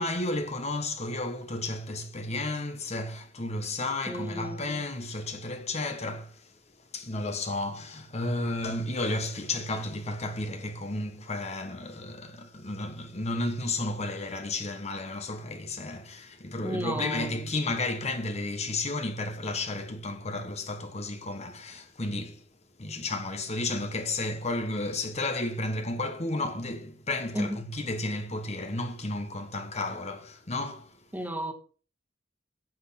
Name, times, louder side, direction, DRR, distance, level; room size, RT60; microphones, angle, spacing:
voice 1, 0.0-6.6 6.9-22.4 22.8-31.0, left 2 dB, 35° left, 1.2 m, -32 dB
voice 2, 4.1-4.6 16.6-17.3 27.3-27.6 31.1-31.5, equal, 10° right, 1.6 m, -33 dB
9.4 x 8.4 x 5.8 m
head